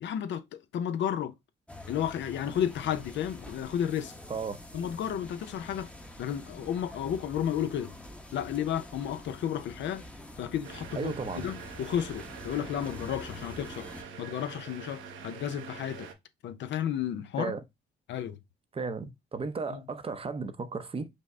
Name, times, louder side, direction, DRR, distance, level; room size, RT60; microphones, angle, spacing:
voice 1, 0.0-1.3 1.9-4.1 4.7-5.9 6.2-7.9 8.3-10.0 10.4-13.9 14.2-16.1 16.4-17.5 18.1-18.4 19.7-19.8, left 9 dB, 65° left, 0.6 m, -32 dB
sound 1, 1.7-14.0, left 1 dB, 5° left, 0.8 m, -46 dB
sound 2, 10.6-16.1, right 5 dB, 80° right, 0.8 m, -45 dB
voice 2, 10.9-11.5 17.4-17.6 18.7-21.1, right 4 dB, 30° right, 0.6 m, -34 dB
5.4 x 2.1 x 3.7 m
cardioid pair, 90°, 20 cm